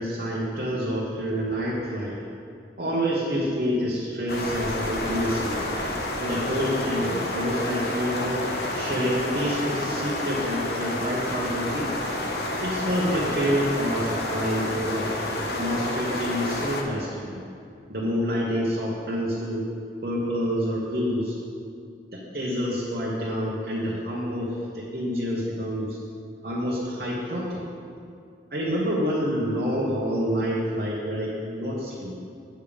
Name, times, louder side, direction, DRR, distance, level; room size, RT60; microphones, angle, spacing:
voice 1, 0.0-2.2 2.8-5.6 6.2-8.4 8.7-11.9 12.6-15.1 15.4-17.4 17.9-19.7 20.0-21.3 22.1-26.0 26.4-27.6 28.5-32.1, equal, 55° right, -6 dB, 1.3 m, -27 dB
sound 1, 4.3-16.8, left 1 dB, 65° left, 1.0 m, -30 dB
8.9 x 7.2 x 5.1 m, 2.3 s
head